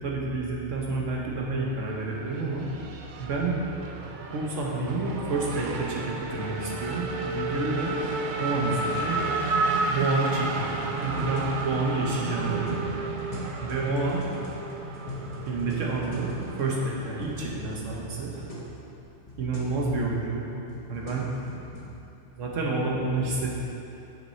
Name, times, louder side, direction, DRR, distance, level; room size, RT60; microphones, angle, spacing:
voice 1, 0.0-2.7 3.2-3.7 4.3-7.9 8.4-9.3 9.8-10.7 11.0-12.8 13.6-14.2 15.5-18.3 19.4-20.4 20.9-21.3 22.4-23.6, right 3 dB, 85° right, -2 dB, 1.4 m, -29 dB
Race car auto racing / Accelerating revving vroom, 1.7-18.7, right 3 dB, 55° right, 0.6 m, -32 dB
sound 1, 10.7-18.7 19.0-19.1 19.3-19.7 20.4-21.9, left 1 dB, 30° left, 1.1 m, -41 dB
6.1 x 5.9 x 4.4 m, 3.0 s
omnidirectional pair, 1.3 m